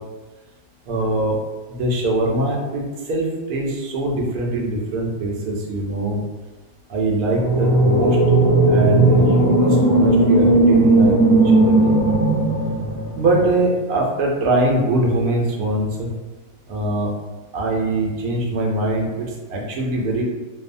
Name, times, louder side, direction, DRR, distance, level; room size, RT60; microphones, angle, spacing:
voice 1, 0.9-1.4 1.8-2.8 3.1-6.2 6.9-8.2 8.7-12.0 13.2-16.1 16.7-17.1 17.5-20.2, right 1 dB, 75° right, -1 dB, 1.1 m, -22 dB
sound 1, 7.3-13.4, right 2 dB, 20° left, 0.6 m, -16 dB
3.0 x 2.0 x 2.5 m, 1.2 s
omnidirectional pair, 1.6 m